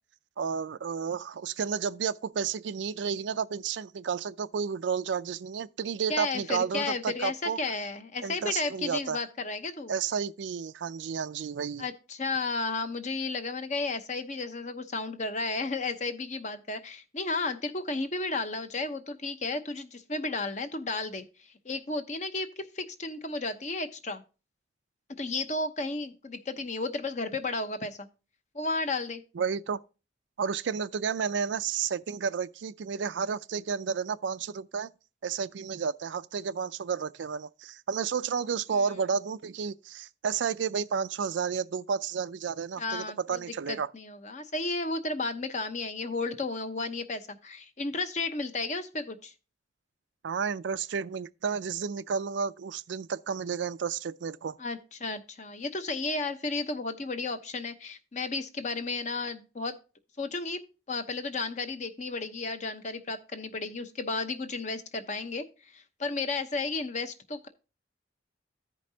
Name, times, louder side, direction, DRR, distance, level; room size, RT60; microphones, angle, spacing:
voice 1, 0.4-7.6 8.2-9.2 9.9-11.9 29.3-29.8 30.4-34.9 35.2-43.9 50.2-54.6, right 6 dB, 75° right, 0.4 m, -31 dB
voice 2, 6.1-9.9 11.8-24.2 25.2-28.1 28.5-29.2 42.8-43.4 43.7-49.3 54.6-59.7 60.2-60.6 60.9-67.5, left 3 dB, 40° left, 0.8 m, -33 dB
14.5 x 5.2 x 2.8 m
head